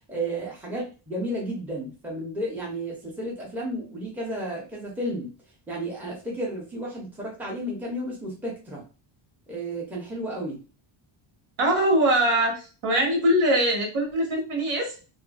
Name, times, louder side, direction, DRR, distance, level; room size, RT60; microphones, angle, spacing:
voice 1, 0.1-5.3 5.7-8.9 9.5-10.6, right 1 dB, 5° right, -3 dB, 0.5 m, -32 dB
voice 2, 11.6-14.9, right 1 dB, 90° right, 0 dB, 1.4 m, -22 dB
2.5 x 2.4 x 2.4 m, 0.34 s
cardioid pair, 175°, 48 cm